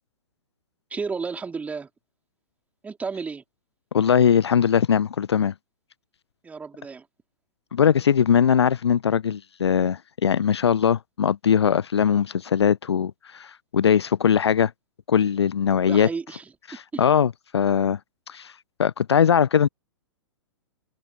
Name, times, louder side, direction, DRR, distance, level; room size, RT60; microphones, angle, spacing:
voice 1, 0.9-1.9 2.8-3.4 6.4-7.1 15.9-16.5 16.9-17.0, right 5 dB, 10° right, 3.7 m, -32 dB
voice 2, 3.9-5.5 7.7-14.7 15.1-16.1 16.7-18.0 18.3-18.5 18.8-19.7, left 8 dB, 60° left, 0.6 m, -20 dB
open air
figure-of-eight pair, 115°, 15 cm